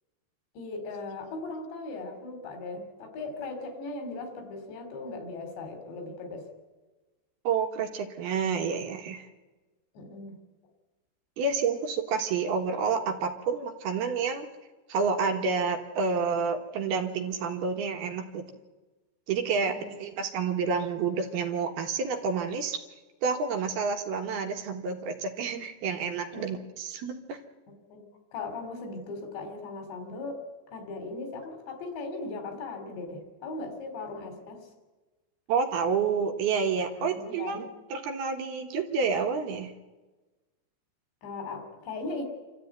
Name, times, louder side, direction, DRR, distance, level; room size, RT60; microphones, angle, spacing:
voice 1, 0.6-6.5 10.0-10.4 19.7-19.9 26.3-26.6 27.7-34.7 37.0-37.7 41.2-42.2, left 3 dB, 75° left, 6 dB, 5.5 m, -38 dB
voice 2, 7.4-9.3 11.4-14.5 14.9-18.5 19.3-22.8 23.2-27.4 35.5-37.6 37.9-39.7, right 5 dB, 70° right, 4 dB, 3.2 m, -29 dB
27.5 x 13.5 x 9.3 m, 1.2 s
omnidirectional pair, 5.0 m